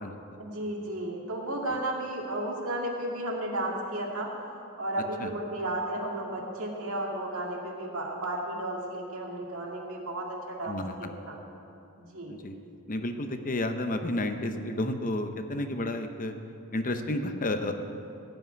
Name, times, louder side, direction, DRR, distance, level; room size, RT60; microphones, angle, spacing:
voice 1, 0.4-4.3 4.8-11.4 12.0-12.3, right 1 dB, 65° right, -1 dB, 2.1 m, -33 dB
voice 2, 12.9-16.3 16.7-17.7, left 1 dB, 40° left, 7 dB, 0.7 m, -31 dB
16.0 x 5.8 x 9.3 m, 2.6 s
head